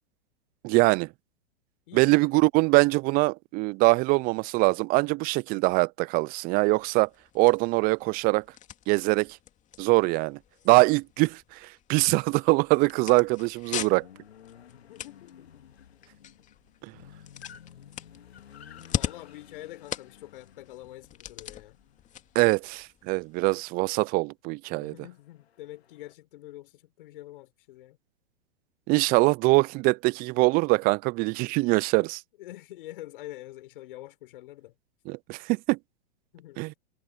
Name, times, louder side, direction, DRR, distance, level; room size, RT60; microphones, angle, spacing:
voice 1, 0.6-1.1 1.9-7.1 7.3-8.4 8.9-9.4 9.8-10.4 10.7-14.0 16.8-16.9 22.3-24.9 28.9-32.2 35.1-35.8 36.6-36.7, right 25 dB, 30° right, 0.6 m, -23 dB
voice 2, 1.9-2.2 14.9-15.7 18.9-21.8 24.7-28.0 32.4-34.7 36.3-36.8, left 15 dB, 55° left, 5.1 m, -45 dB
sound 1, 6.6-23.5, left 10 dB, 25° left, 2.5 m, -41 dB
sound 2, 13.9-22.8 25.2-26.1, left 9 dB, 75° left, 2.4 m, -52 dB
hypercardioid pair, 110°, 32 cm